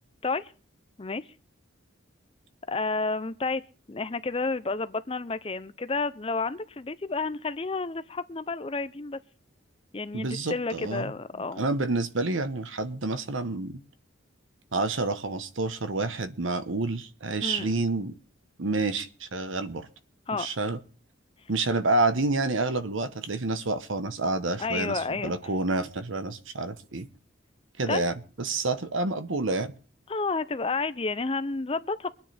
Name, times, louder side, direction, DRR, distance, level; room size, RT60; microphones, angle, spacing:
voice 1, 2.7-3.6 3.9-9.2 9.9-11.7 17.4-17.7 20.3-20.5 24.6-25.3 27.9-28.0 30.1-32.1, left 3 dB, 30° left, 0.5 m, -30 dB
voice 2, 10.1-11.1 11.6-13.8 14.7-18.2 18.6-19.9 20.3-20.8 21.5-27.1 27.8-29.7, right 2 dB, 75° right, 1.1 m, -28 dB
23.5 x 9.6 x 3.4 m
head